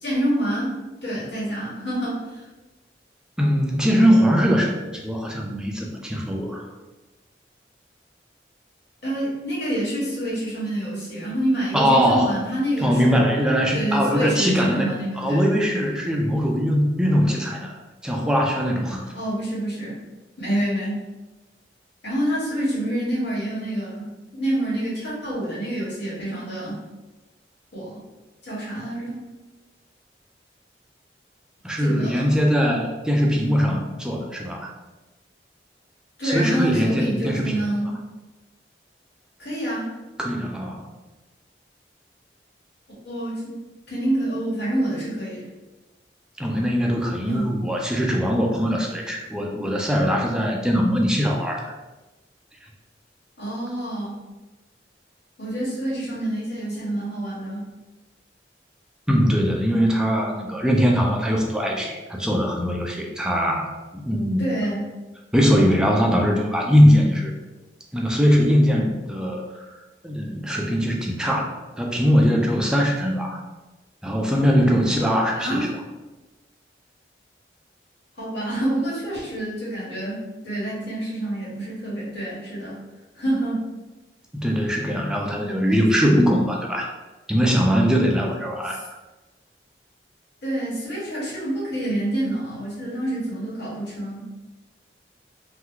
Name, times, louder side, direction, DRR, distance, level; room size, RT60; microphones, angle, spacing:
voice 1, 0.0-2.4 9.0-13.2 13.7-15.5 19.1-20.0 20.4-21.0 22.0-26.8 27.7-28.0 28.4-29.2 31.8-32.4 36.2-37.9 39.4-39.9 43.0-45.4 47.2-47.5 53.4-54.1 55.4-57.7 64.4-64.8 75.3-75.7 78.2-82.8 83.1-83.6 85.7-85.8 88.7-88.8 90.4-94.2, right 1 dB, 80° left, -7 dB, 1.5 m, -27 dB
voice 2, 3.4-4.8 5.0-6.7 11.7-12.4 12.8-17.7 18.0-19.1 31.6-34.7 36.2-37.6 40.2-40.8 46.4-51.6 59.1-63.7 64.0-64.5 65.3-67.3 67.9-69.4 70.0-73.4 74.0-75.7 84.3-86.9 87.3-88.8, equal, 5° right, 0 dB, 0.3 m, -21 dB
2.9 x 2.3 x 3.6 m, 1.1 s
head